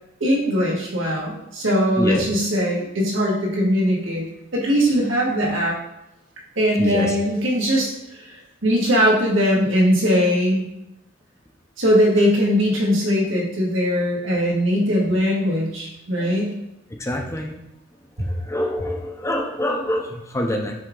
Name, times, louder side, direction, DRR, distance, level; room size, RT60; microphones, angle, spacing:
voice 1, 0.2-4.2 4.5-5.8 6.6-8.2 8.6-10.6 11.8-16.5 18.2-18.3, equal, 80° right, -3 dB, 1.8 m, -20 dB
voice 2, 6.8-7.1 16.2-16.3 17.0-17.6 18.3-20.7, left 1 dB, 15° left, 2 dB, 0.6 m, -25 dB
7.6 x 3.6 x 3.8 m, 0.91 s
head